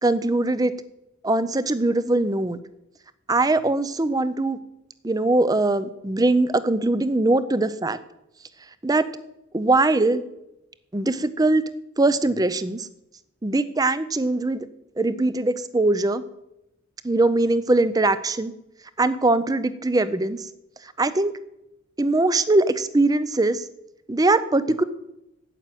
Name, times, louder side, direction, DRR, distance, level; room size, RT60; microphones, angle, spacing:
voice 1, 0.0-0.7 1.2-2.6 3.3-4.6 5.0-8.0 8.8-9.0 9.5-10.2 10.9-11.6 12.0-12.9 13.4-14.7 15.0-16.2 17.0-18.5 19.0-20.4 21.0-21.3 22.0-23.6 24.1-24.8, right 2 dB, 20° right, 15 dB, 0.5 m, -21 dB
9.2 x 7.6 x 9.1 m, 0.88 s
head